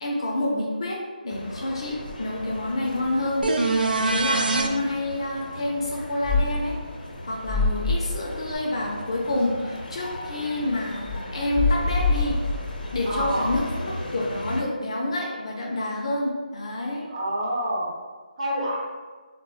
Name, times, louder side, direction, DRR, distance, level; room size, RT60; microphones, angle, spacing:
voice 1, 0.0-1.0 1.2-3.5 3.9-6.8 7.2-12.4 12.9-17.1, left 1 dB, 35° left, -2 dB, 0.4 m, -28 dB
sound 1, 1.3-14.6, left 1 dB, 90° left, 0.6 m, -38 dB
voice 2, 2.7-3.1 3.8-4.2 13.0-13.6 17.1-17.9 18.4-18.8, right 1 dB, 45° right, -6 dB, 0.8 m, -28 dB
sound 2, 3.4-4.7 8.5-8.6, right 3 dB, 90° right, 0.4 m, -23 dB
sound 3, 6.2-6.8 7.4-8.2 11.0-13.6, left 3 dB, 15° right, 0.5 m, -25 dB
2.0 x 2.0 x 3.7 m, 1.4 s
hypercardioid pair, 170°, 5 cm